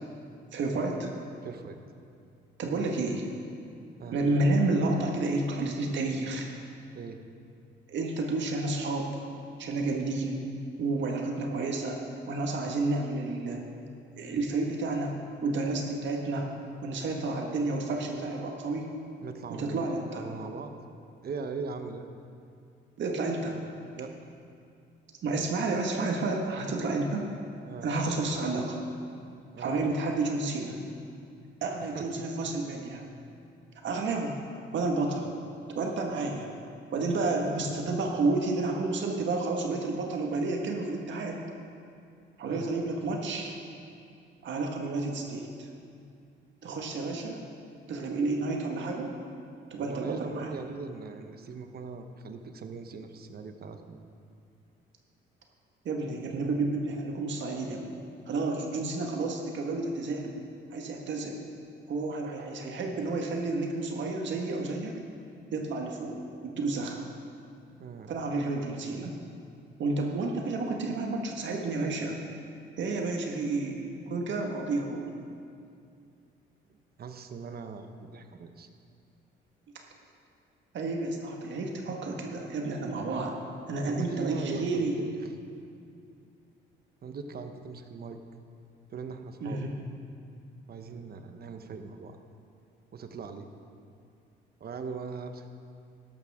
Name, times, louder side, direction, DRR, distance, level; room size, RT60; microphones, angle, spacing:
voice 1, 0.5-1.1 2.6-3.2 4.1-6.5 7.9-9.2 9.6-10.4 10.8-12.0 12.3-13.6 14.2-15.2 15.4-16.5 16.8-18.9 19.5-20.3 23.0-23.6 25.2-27.3 27.8-28.8 29.6-30.8 31.6-33.0 33.8-34.4 34.7-35.3 35.7-36.5 36.9-41.4 42.4-43.6 44.4-45.7 46.6-47.4 47.9-49.1 49.7-50.5 55.8-58.0 58.3-60.3 60.7-61.4 61.9-64.9 65.5-66.2 66.4-67.0 68.1-69.2 69.8-72.2 72.8-75.0 80.7-83.3 83.7-85.0 89.4-89.7, right 3 dB, 70° right, 1 dB, 1.7 m, -30 dB
voice 2, 1.4-1.8 4.0-4.1 6.9-7.2 12.6-12.7 19.2-19.9 20.1-20.7 21.2-22.0 23.9-24.1 27.6-27.9 29.5-29.8 31.9-32.3 42.5-42.7 49.8-54.0 67.8-68.1 77.0-78.7 83.9-85.2 87.0-88.2 88.9-89.6 90.7-92.2 92.9-93.5 94.6-95.5, right 5 dB, 50° right, 7 dB, 1.0 m, -40 dB
13.0 x 12.0 x 3.7 m, 2.4 s
cardioid pair, 90°, 20 cm